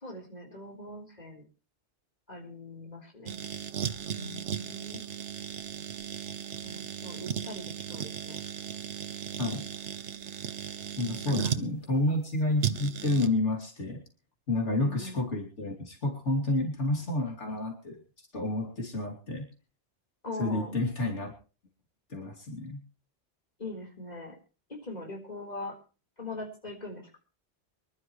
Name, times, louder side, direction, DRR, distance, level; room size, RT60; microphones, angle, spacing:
voice 1, 0.0-1.4 2.3-3.4 4.1-5.0 6.6-8.4 11.3-11.5 14.8-15.2 20.2-20.8 23.6-24.4 24.8-25.8 26.2-27.2, left 2 dB, 35° left, 1 dB, 4.1 m, -41 dB
sound 1, 3.3-11.7 12.6-13.3, right 8 dB, 80° right, 1.2 m, -36 dB
voice 2, 11.0-14.0 14.5-18.0 18.3-19.5 20.4-21.3 22.1-22.8, left 2 dB, 85° left, 0 dB, 3.2 m, -30 dB
24.5 x 12.0 x 3.1 m, 0.35 s
omnidirectional pair, 1.2 m